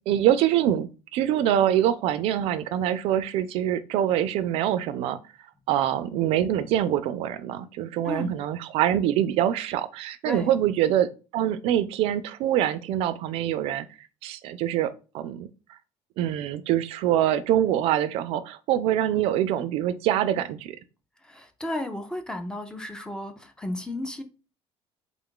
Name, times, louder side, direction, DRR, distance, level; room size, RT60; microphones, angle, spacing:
voice 1, 0.0-5.2 5.7-13.9 14.2-15.5 16.2-20.8, right 11 dB, 70° right, 0.4 m, -25 dB
voice 2, 21.2-24.2, left 1 dB, 5° left, 0.4 m, -33 dB
3.5 x 2.3 x 3.7 m
cardioid pair, 160°, 10 cm